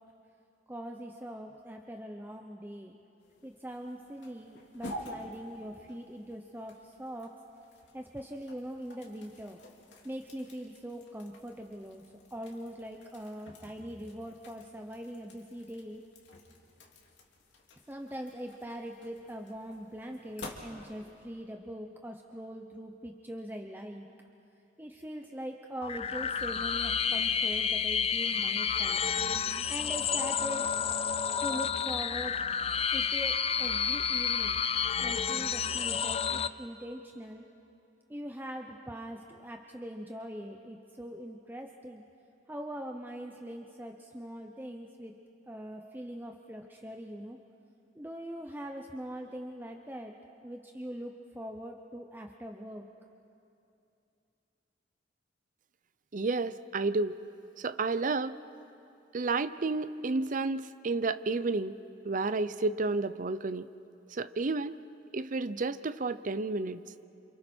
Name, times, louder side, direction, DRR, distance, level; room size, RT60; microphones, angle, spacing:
voice 1, 0.7-3.0 3.4-7.3 7.9-9.6 10.0-12.0 12.3-16.0 17.9-24.1 24.8-29.0 29.7-30.7 31.4-32.4 32.9-34.6 35.0-37.4 38.1-42.0 42.5-45.1 45.5-47.4 48.0-50.2 50.4-52.8, equal, 10° right, 2 dB, 0.8 m, -42 dB
sound 1, 3.2-21.2, left 1 dB, 75° left, 2.7 m, -50 dB
sound 2, 25.8-36.5, left 7 dB, 35° left, 0.5 m, -30 dB
voice 2, 56.1-57.2 57.6-58.4 59.1-61.8 62.0-63.7 64.1-64.7 65.1-66.8, right 3 dB, 45° right, 13 dB, 0.6 m, -31 dB
29.5 x 27.5 x 4.4 m, 2.7 s
head